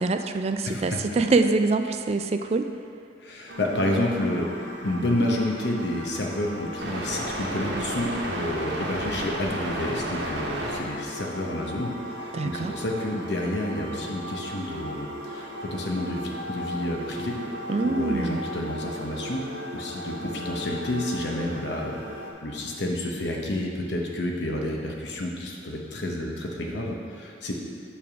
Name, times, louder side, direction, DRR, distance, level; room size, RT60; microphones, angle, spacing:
voice 1, 0.0-2.7 12.3-12.8 17.7-18.4, right 3 dB, 35° right, 7 dB, 0.3 m, -24 dB
voice 2, 0.7-1.0 3.2-17.4 17.8-19.4 19.7-22.0 22.4-27.5, left 1 dB, 70° left, 0 dB, 0.9 m, -30 dB
sound 1, 3.5-22.3, equal, 65° right, 1.0 m, -35 dB
7.1 x 3.5 x 5.9 m, 2.5 s
head